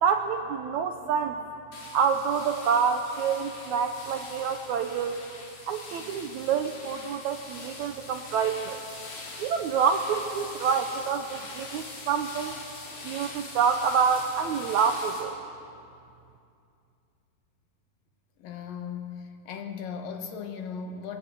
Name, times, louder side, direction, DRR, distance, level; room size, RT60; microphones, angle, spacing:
voice 1, 0.0-1.4 1.9-5.2 5.7-8.8 9.4-12.6 13.0-15.4, right 6 dB, 75° right, 6 dB, 1.7 m, -27 dB
Pushing Leaves, 1.7-15.2, left 3 dB, 85° left, 5.5 m, -43 dB
voice 2, 18.4-21.2, left 6 dB, 70° left, 5 dB, 2.9 m, -37 dB
22.0 x 19.0 x 8.3 m, 2.5 s
omnidirectional pair, 4.2 m